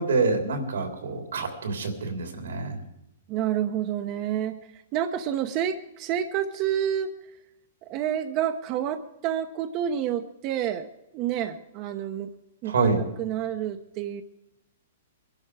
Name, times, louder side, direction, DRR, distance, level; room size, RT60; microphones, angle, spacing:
voice 1, 0.0-2.8 12.6-13.0, right 3 dB, 85° right, 4 dB, 3.3 m, -26 dB
voice 2, 3.3-7.1 7.8-10.9 11.1-12.3 12.6-12.7 13.2-14.2, right 10 dB, 35° right, 7 dB, 0.9 m, -29 dB
22.0 x 11.5 x 4.8 m, 0.86 s
hypercardioid pair, 140°, 0 cm